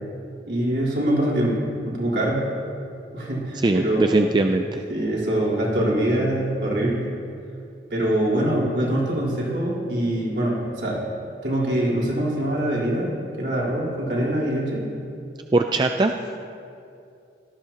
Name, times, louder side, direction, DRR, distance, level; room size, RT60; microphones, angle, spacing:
voice 1, 0.5-2.5 3.1-4.3 4.9-7.1 7.9-11.0 11.4-13.1 13.4-14.8, right 1 dB, 65° right, -6 dB, 3.8 m, -24 dB
voice 2, 3.6-4.8 15.5-16.1, right 2 dB, 25° right, 5 dB, 0.3 m, -20 dB
18.0 x 14.0 x 2.9 m, 2.5 s
head